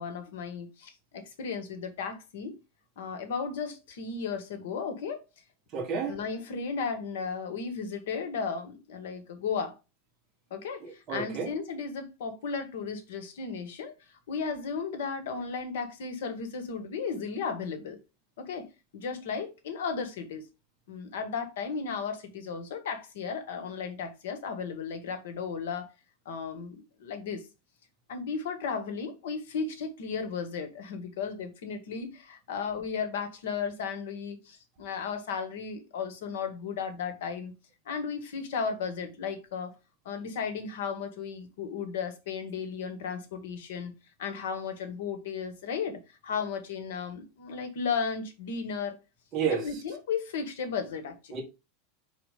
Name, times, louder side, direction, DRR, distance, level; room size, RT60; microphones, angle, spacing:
voice 1, 0.0-2.6 3.0-5.2 6.1-9.8 10.5-18.0 18.4-20.4 20.9-25.9 26.2-27.4 28.1-37.5 37.8-39.7 40.0-43.9 44.2-49.0 49.5-51.4, left 5 dB, 80° left, 1.6 m, -35 dB
voice 2, 5.7-6.2 10.8-11.5 49.3-49.6 51.3-51.4, right 6 dB, 25° right, 1.6 m, -30 dB
5.0 x 4.3 x 5.1 m
supercardioid pair, 175°, 0 cm